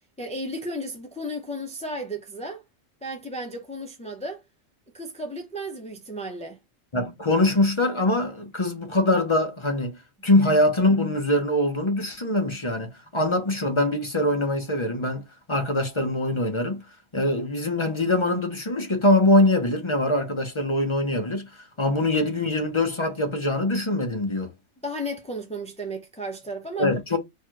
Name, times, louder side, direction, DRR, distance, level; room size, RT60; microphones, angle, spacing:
voice 1, 0.2-2.6 3.0-4.4 4.9-6.6 24.8-26.9, equal, 10° left, 0.4 m, -34 dB
voice 2, 6.9-10.0 10.2-16.8 17.1-24.5 26.8-27.2, left 1 dB, 25° left, 0.9 m, -23 dB
4.6 x 2.4 x 4.6 m
omnidirectional pair, 1.4 m